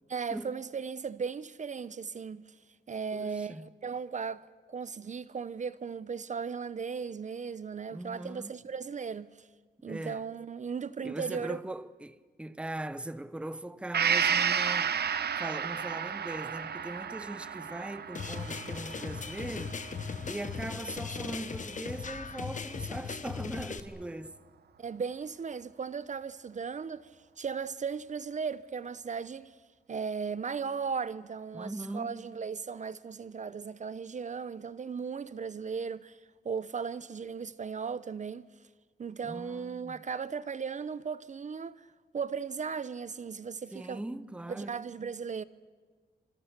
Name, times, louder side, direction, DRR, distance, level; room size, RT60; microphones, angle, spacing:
voice 1, 0.1-2.4 2.9-9.5 9.8-11.6 24.8-27.1 27.4-29.5 29.9-36.2 36.4-38.4 39.0-41.9 42.1-44.0 44.5-45.4, right 6 dB, 40° right, 0.7 m, -37 dB
voice 2, 3.1-3.7 7.9-8.6 9.9-10.2 11.0-19.9 20.2-24.4 31.5-32.4 39.2-40.0 43.7-44.9, right 1 dB, 5° right, 0.7 m, -40 dB
Gong, 13.9-21.6 22.0-22.1, right 7 dB, 65° right, 1.2 m, -32 dB
sound 1, 18.1-23.8, left 5 dB, 45° left, 1.4 m, -38 dB
26.5 x 26.5 x 6.7 m
wide cardioid pair, 125°, 18 cm